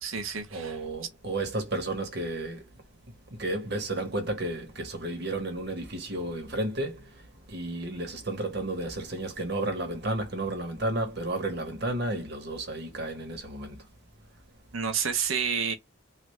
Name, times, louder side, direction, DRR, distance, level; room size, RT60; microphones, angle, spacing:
voice 1, 0.0-0.8 14.7-15.7, right 6 dB, 80° right, 0.9 m, -29 dB
voice 2, 0.5-2.7 3.3-13.8, right 2 dB, 50° right, 1.1 m, -32 dB
3.3 x 2.3 x 3.2 m
head